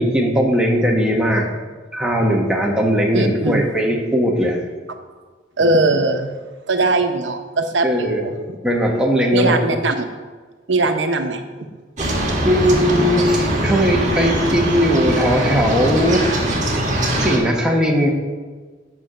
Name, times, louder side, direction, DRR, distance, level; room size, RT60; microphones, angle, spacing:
voice 1, 0.0-1.5 1.9-4.6 7.8-8.2 8.6-9.5 12.0-12.1 12.4-16.3 17.2-18.1, equal, 5° right, -1 dB, 1.1 m, -18 dB
voice 2, 3.1-3.7 5.6-6.3 6.7-8.3 9.3-10.1 10.7-11.4, right 2 dB, 85° right, 6 dB, 0.8 m, -19 dB
sound 1, 12.0-17.4, right 1 dB, 40° right, 1.6 m, -21 dB
9.1 x 6.2 x 5.1 m, 1.4 s
head